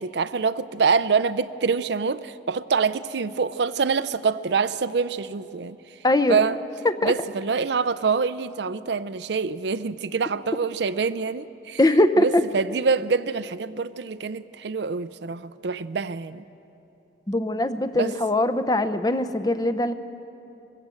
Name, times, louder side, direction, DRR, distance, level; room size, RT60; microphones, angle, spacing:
voice 1, 0.0-5.8 6.3-6.6 7.0-16.4 17.9-18.1, right 5 dB, 70° right, 14 dB, 0.5 m, -25 dB
voice 2, 6.0-6.4 6.8-7.1 11.8-12.4 17.3-19.9, left 1 dB, 20° left, 10 dB, 0.6 m, -21 dB
21.5 x 16.0 x 7.7 m, 2.8 s
head